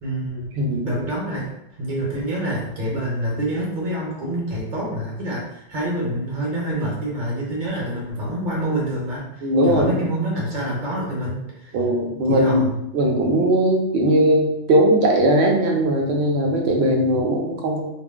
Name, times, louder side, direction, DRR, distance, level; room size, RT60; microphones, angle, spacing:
voice 1, 0.0-0.5 0.8-1.5 1.8-11.7 12.3-12.7, right 1 dB, 45° right, -4 dB, 1.0 m, -26 dB
voice 2, 9.4-10.0 11.7-12.6 12.9-17.8, right 1 dB, 65° right, 0 dB, 0.9 m, -19 dB
2.5 x 2.0 x 3.5 m, 0.81 s
omnidirectional pair, 1.3 m